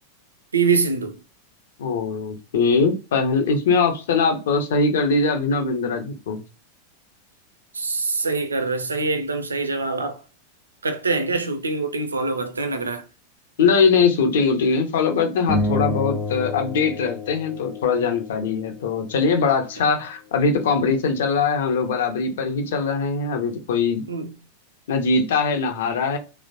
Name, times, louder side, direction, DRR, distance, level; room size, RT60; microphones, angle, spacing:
voice 1, 0.5-1.1 7.7-10.2 10.8-13.0 24.1-24.4, right 4 dB, 75° right, 0.5 m, -24 dB
voice 2, 1.8-6.4 13.6-24.0 24.9-26.2, left 4 dB, 60° left, 0.7 m, -21 dB
sound 1, 15.5-18.1, left 2 dB, 5° left, 0.6 m, -27 dB
3.1 x 2.0 x 2.6 m
figure-of-eight pair, 90°, 0 cm